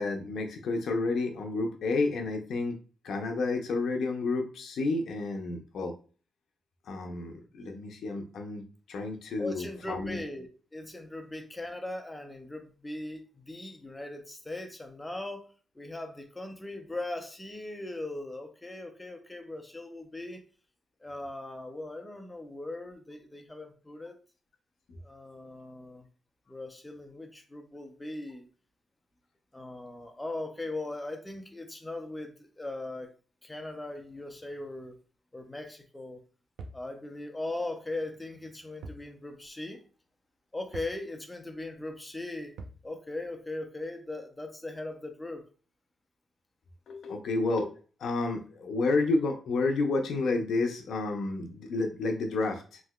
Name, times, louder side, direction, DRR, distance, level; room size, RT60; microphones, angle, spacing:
voice 1, 0.0-2.8 3.0-5.9 6.9-10.2 46.9-52.8, left 3 dB, 60° left, 0.5 m, -30 dB
voice 2, 9.4-15.5 15.8-20.4 21.0-24.1 25.0-26.1 26.5-28.5 29.5-33.1 33.4-35.0 35.3-36.2 36.7-39.8 40.5-42.5 42.8-45.4, left 2 dB, 10° left, 0.4 m, -39 dB
sound 1, 36.6-36.9 38.8-39.1 39.4-39.5 40.7-41.0 42.6-42.9, right 2 dB, 75° right, 0.4 m, -43 dB
3.2 x 2.7 x 2.3 m
wide cardioid pair, 170°, 0 cm